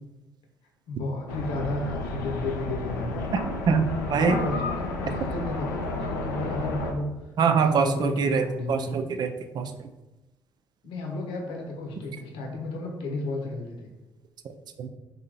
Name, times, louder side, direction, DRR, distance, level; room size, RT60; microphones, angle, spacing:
voice 1, 0.9-3.3 4.1-7.1 7.5-9.0 10.8-13.9, left 2 dB, 65° left, 0 dB, 1.0 m, -33 dB
sound 1, 1.3-6.9, left 2 dB, 80° left, 0.5 m, -31 dB
voice 2, 3.7-4.4 7.4-9.9 14.8-14.9, right 5 dB, 50° right, 8 dB, 0.5 m, -24 dB
4.8 x 2.8 x 3.9 m, 1.0 s
hypercardioid pair, 50°, 10 cm